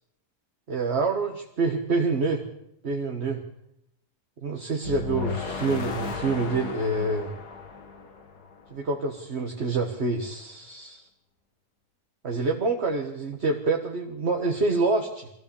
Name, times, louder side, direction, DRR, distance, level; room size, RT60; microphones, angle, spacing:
voice 1, 0.7-2.5 2.8-3.4 4.4-7.3 8.7-11.1 12.2-15.3, right 3 dB, 40° right, 2 dB, 1.8 m, -27 dB
sound 1, 4.8-8.9, left 5 dB, 75° left, 2.5 m, -35 dB
24.5 x 15.5 x 7.1 m, 0.80 s
omnidirectional pair, 1.7 m